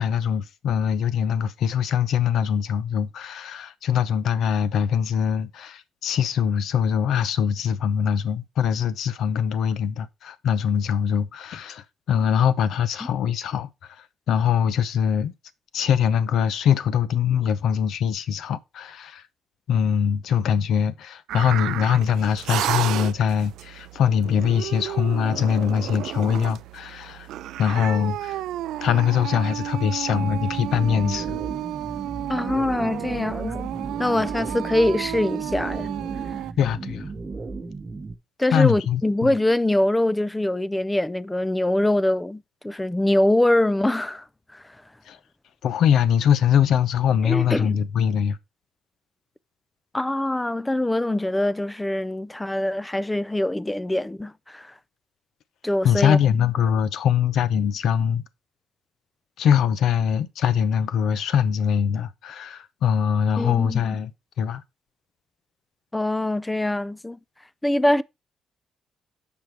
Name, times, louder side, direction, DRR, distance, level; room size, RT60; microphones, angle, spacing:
voice 1, 0.0-15.3 15.7-19.2 19.7-27.3 27.6-28.4 28.8-31.4 36.6-37.1 38.5-39.3 45.1-45.2 45.6-48.4 55.8-58.2 59.4-64.1 64.4-64.6, left 8 dB, 75° left, 0.7 m, -22 dB
sound 1, 21.3-36.5, right 13 dB, 85° right, 0.3 m, -32 dB
sound 2, 30.1-38.1, right 3 dB, 25° right, 1.0 m, -35 dB
voice 2, 32.3-33.7 34.0-35.9 38.4-44.2 44.5-44.6 47.2-47.8 49.9-54.7 55.6-56.2 63.4-63.8 65.9-67.2 67.6-68.0, left 1 dB, 10° left, 0.4 m, -23 dB
6.5 x 5.3 x 4.5 m
cardioid pair, 90°, 0 cm